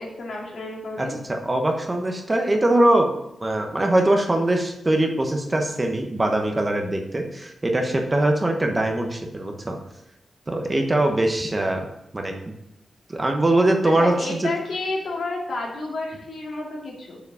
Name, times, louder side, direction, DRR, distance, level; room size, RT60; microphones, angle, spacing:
voice 1, 0.0-1.2 13.8-17.2, left 2 dB, 80° left, -2 dB, 2.3 m, -31 dB
voice 2, 1.0-3.1 3.4-9.8 10.5-11.9 12.1-12.3 13.1-14.5, right 1 dB, 20° right, 3 dB, 1.0 m, -22 dB
6.7 x 5.0 x 6.9 m, 0.84 s
wide cardioid pair, 145°, 0 cm